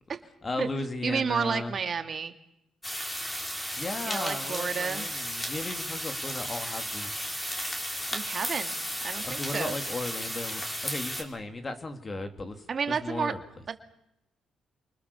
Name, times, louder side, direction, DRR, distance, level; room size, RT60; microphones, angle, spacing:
voice 1, 0.4-1.8 3.3-3.5 3.8-7.1 9.2-13.4, left 2 dB, 30° left, 7 dB, 3.2 m, -36 dB
voice 2, 1.0-2.3 4.0-5.1 8.1-8.8 9.0-9.8 12.7-13.3 13.7-13.8, right 6 dB, 45° right, 7 dB, 2.4 m, -31 dB
sound 1, 2.8-11.2, equal, 10° left, 5.0 m, -34 dB
28.0 x 25.0 x 7.2 m, 0.80 s
cardioid pair, 90°, 0 cm